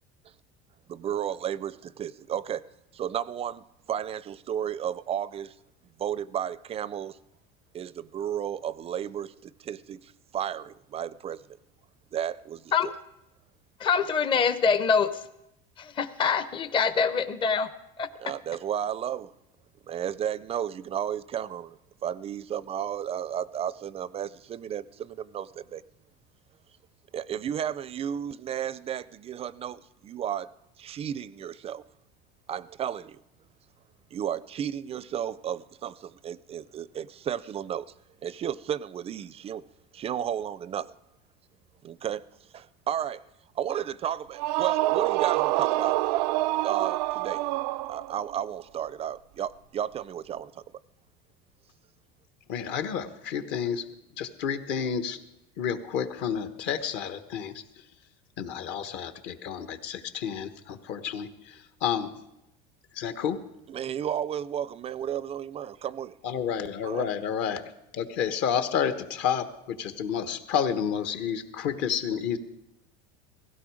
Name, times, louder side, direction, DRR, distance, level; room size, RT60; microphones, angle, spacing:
voice 1, 0.9-2.6 2.9-5.6 6.0-7.2 7.7-11.4 12.1-12.9 18.2-19.3 19.9-25.8 27.1-30.5 30.8-31.8 32.5-33.2 34.1-37.9 38.2-39.6 39.9-40.9 41.8-42.2 42.5-43.2 43.5-46.0 46.6-47.4 47.9-50.6 63.7-66.1 66.8-67.1, right 9 dB, 30° right, 0.4 m, -33 dB
voice 2, 13.8-15.2 15.8-17.7 18.0-18.1, left 6 dB, 25° left, 0.7 m, -25 dB
sound 1, 44.3-48.3, right 18 dB, 85° right, 0.5 m, -26 dB
voice 3, 52.5-53.9 54.2-55.2 55.6-57.6 58.4-62.1 62.9-63.4 66.2-72.4, left 8 dB, 60° left, 1.4 m, -30 dB
17.0 x 16.0 x 5.0 m
supercardioid pair, 125°, 20 cm